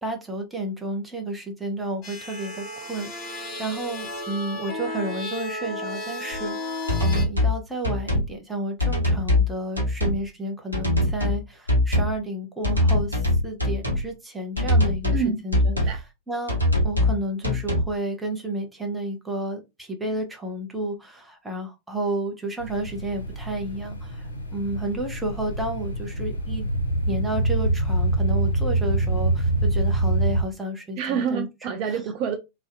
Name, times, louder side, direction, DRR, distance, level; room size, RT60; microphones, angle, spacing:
voice 1, 0.0-13.2 13.4-15.7 16.3-16.6 16.8-26.7 27.1-31.5, right 1 dB, 5° right, 0.7 m, -31 dB
sound 1, 2.0-7.3, left 2 dB, 25° left, 1.3 m, -34 dB
sound 2, 6.3-6.4 6.9-7.6 7.8-8.3 8.8-9.5 9.8-10.2 10.7-11.4 11.7-12.2 12.6-14.1 14.6-15.2 15.5-16.0 16.5-17.2 17.4-17.9, left 1 dB, 90° right, 0.8 m, -22 dB
sound 3, 22.6-30.4, right 2 dB, 75° left, 0.5 m, -25 dB
voice 2, 31.0-32.4, right 7 dB, 45° right, 0.3 m, -27 dB
2.5 x 2.0 x 2.5 m
figure-of-eight pair, 90°, 0 cm